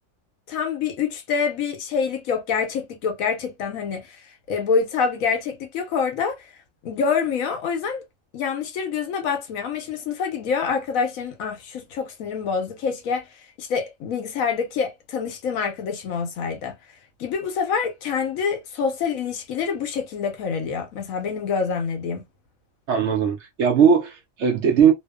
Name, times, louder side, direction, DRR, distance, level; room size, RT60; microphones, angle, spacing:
voice 1, 0.5-6.5 6.8-8.0 8.3-16.8 17.2-22.2, left 6 dB, 90° left, 1.2 m, -26 dB
voice 2, 22.9-24.9, right 7 dB, 65° right, 0.8 m, -19 dB
2.8 x 2.1 x 2.2 m
omnidirectional pair, 1.4 m